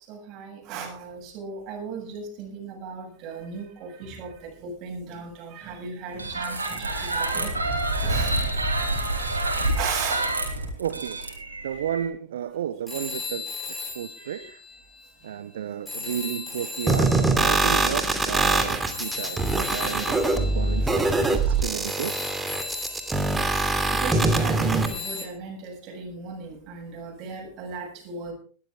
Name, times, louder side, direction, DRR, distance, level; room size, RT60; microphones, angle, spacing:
voice 1, 0.1-8.4 9.2-9.3 9.7-10.2 14.2-14.5 20.8-20.9 21.5-21.6 23.9-28.3, right 5 dB, 40° right, 2 dB, 7.4 m, -36 dB
sound 1, 6.1-12.1, right 1 dB, 80° right, 4.4 m, -27 dB
voice 2, 10.8-11.3 11.6-13.5 13.8-14.6 15.2-22.1, right 10 dB, 60° right, 14 dB, 0.8 m, -32 dB
sound 2, 12.9-15.3 15.9-24.3 24.9-25.3, left 4 dB, 10° left, 5.6 m, -37 dB
sound 3, 16.9-24.9, right 2 dB, 10° right, 2.7 m, -23 dB
20.5 x 13.5 x 3.5 m, 0.41 s
figure-of-eight pair, 90°, 0 cm